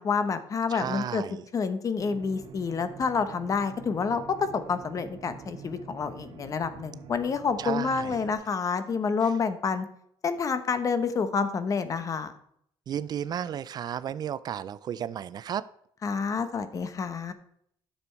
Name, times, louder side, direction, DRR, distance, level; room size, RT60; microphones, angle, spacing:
voice 1, 0.0-1.2 1.5-9.9 10.2-12.3 16.0-17.3, left 5 dB, 35° left, 11 dB, 0.9 m, -28 dB
voice 2, 0.7-1.4 7.6-8.2 12.9-15.6, right 9 dB, 45° right, 17 dB, 0.4 m, -33 dB
sound 1, 2.0-8.3, right 6 dB, 70° right, 1.4 m, -46 dB
10.0 x 6.9 x 4.5 m, 0.70 s
cardioid pair, 115°, 9 cm